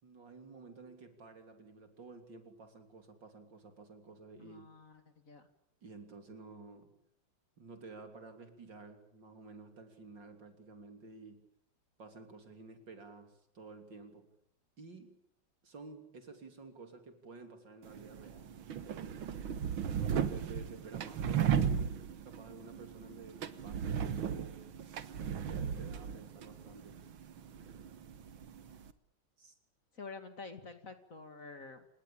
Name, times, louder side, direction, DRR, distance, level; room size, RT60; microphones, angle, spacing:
voice 1, 0.0-4.7 5.8-6.9 7.6-11.5 12.0-14.3 14.8-15.2 15.6-18.5 18.8-19.3 19.8-22.0 22.3-24.6 25.2-27.0 29.4-29.6, right 3 dB, 65° right, 6 dB, 3.8 m, -52 dB
voice 2, 4.4-5.5 29.9-31.9, left 4 dB, 40° left, 8 dB, 2.5 m, -49 dB
sound 1, 17.8-28.9, right 8 dB, 90° right, 2.1 m, -36 dB
29.0 x 18.5 x 8.8 m, 0.70 s
omnidirectional pair, 2.2 m